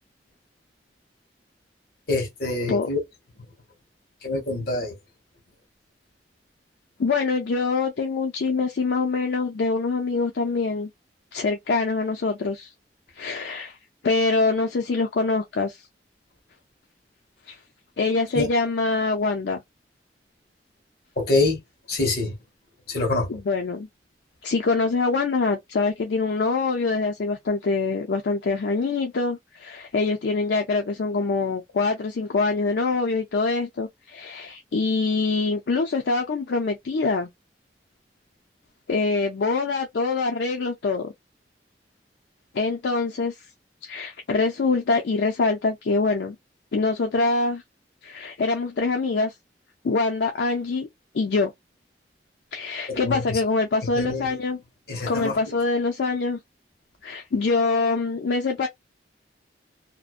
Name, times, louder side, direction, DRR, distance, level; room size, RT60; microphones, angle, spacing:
voice 1, 2.1-3.0 3.4-3.5 4.2-5.0 18.3-18.5 21.2-21.6 21.9-22.3 22.9-23.3 52.9-53.4 53.8-54.4 54.9-55.5, left 2 dB, 55° left, 1.2 m, -26 dB
voice 2, 7.0-10.9 11.3-12.7 13.2-13.8 14.0-15.8 17.5-17.6 18.0-19.6 23.3-23.9 24.4-37.3 38.9-41.1 42.5-43.4 43.8-46.4 46.7-47.6 48.0-49.3 49.8-50.9 51.1-51.5 52.5-54.6 55.1-56.4 57.0-58.7, left 3 dB, 75° left, 0.4 m, -24 dB
2.6 x 2.1 x 2.4 m
head